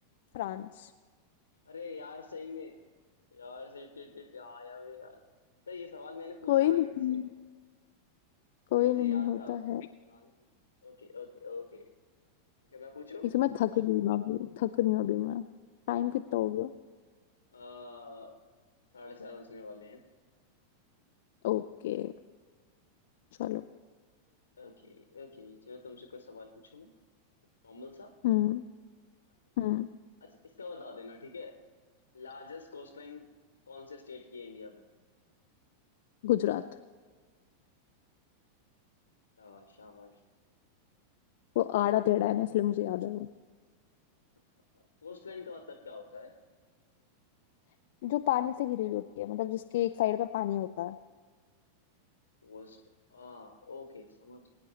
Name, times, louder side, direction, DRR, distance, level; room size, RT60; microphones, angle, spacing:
voice 1, 0.3-0.9 6.5-7.3 8.7-9.9 13.3-15.4 15.9-16.7 21.4-22.1 23.4-23.6 28.2-28.6 29.6-29.9 36.2-36.6 41.6-43.3 48.0-51.0, left 14 dB, 55° left, 9 dB, 0.4 m, -29 dB
voice 2, 1.6-2.8 3.3-5.2 5.7-7.2 8.7-9.6 10.1-10.5 10.8-11.9 12.7-13.3 17.5-18.3 18.9-20.0 24.6-26.9 27.6-28.1 30.2-31.5 32.1-33.2 33.7-34.8 39.4-40.2 44.7-46.3 52.4-52.8 53.1-54.4, left 4 dB, 75° left, 5 dB, 1.0 m, -46 dB
22.0 x 9.5 x 3.1 m, 1.5 s
figure-of-eight pair, 90°, 0 cm